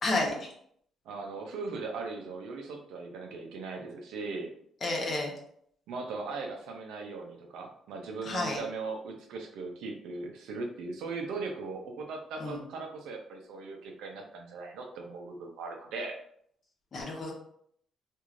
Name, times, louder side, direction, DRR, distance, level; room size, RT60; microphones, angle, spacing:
voice 1, 0.0-0.5 4.8-5.3 8.3-8.6 12.4-12.6 16.9-17.3, left 2 dB, 45° left, -1 dB, 1.0 m, -31 dB
voice 2, 1.1-4.5 5.9-16.2, right 3 dB, 85° right, 2 dB, 0.5 m, -39 dB
3.1 x 2.6 x 2.5 m, 0.67 s
cardioid pair, 90°, 0 cm